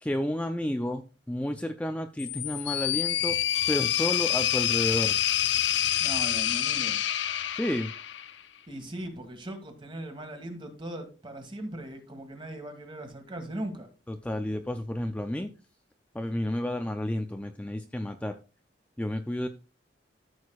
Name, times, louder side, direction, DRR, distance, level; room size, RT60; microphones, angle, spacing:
voice 1, 0.0-3.4 3.7-5.1 7.6-7.9 14.1-15.5 16.1-18.4 19.0-19.5, left 1 dB, 10° left, 0.4 m, -31 dB
sound 1, 2.2-8.4, left 12 dB, 80° left, 0.6 m, -27 dB
voice 2, 6.0-7.0 8.7-13.9, right 1 dB, 30° right, 1.8 m, -39 dB
13.5 x 6.4 x 2.4 m
head